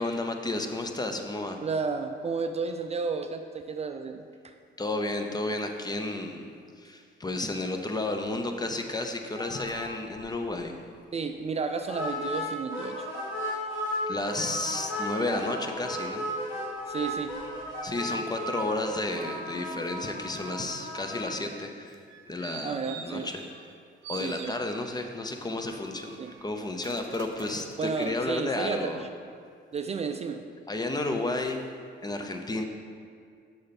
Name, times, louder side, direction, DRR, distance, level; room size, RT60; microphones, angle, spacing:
voice 1, 0.0-1.6 4.8-6.5 6.8-10.8 14.1-16.3 17.8-22.0 22.3-23.4 24.1-29.0 30.7-31.6 32.0-32.6, left 2 dB, 20° left, 5 dB, 0.6 m, -32 dB
voice 2, 1.6-4.5 11.1-13.1 16.9-17.4 22.6-23.3 24.2-24.6 26.2-26.3 27.8-29.1 29.7-30.4, right 5 dB, 35° right, 6 dB, 0.4 m, -32 dB
sound 1, 9.3-9.9 10.1-10.3 10.6-10.7 11.9-14.0 14.3-21.3, left 1 dB, 80° left, 1.7 m, -35 dB
sound 2, 21.9-23.8 24.0-25.1 25.6-28.2 28.7-28.8, right 7 dB, 80° right, 0.6 m, -46 dB
6.5 x 5.6 x 4.2 m, 2.2 s
cardioid pair, 90°, 20 cm